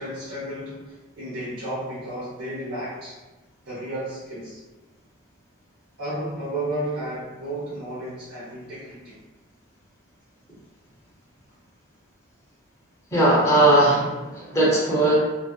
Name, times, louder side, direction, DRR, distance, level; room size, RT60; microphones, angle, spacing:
voice 1, 0.0-3.2 3.7-4.6 6.0-9.2, right 1 dB, 65° right, -11 dB, 0.7 m, -32 dB
voice 2, 13.1-15.1, right 1 dB, 15° left, -8 dB, 0.6 m, -19 dB
2.6 x 2.1 x 2.3 m, 1.1 s
head